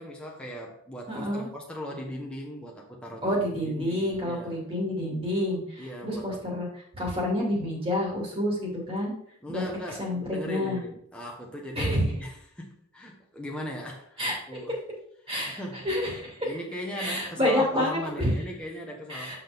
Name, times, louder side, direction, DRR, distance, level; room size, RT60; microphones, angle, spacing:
voice 1, 0.0-4.7 5.8-6.4 9.4-14.8 15.2-15.9 16.4-19.4, equal, 5° left, -2 dB, 1.0 m, -39 dB
voice 2, 1.1-1.5 3.2-6.7 6.9-9.1 9.5-9.6 10.0-10.8 11.8-12.0 14.2-14.3 15.3-15.6 15.8-16.6 17.0-18.3 19.1-19.4, left 1 dB, 25° right, -2 dB, 2.4 m, -28 dB
7.3 x 6.1 x 3.5 m, 0.69 s
head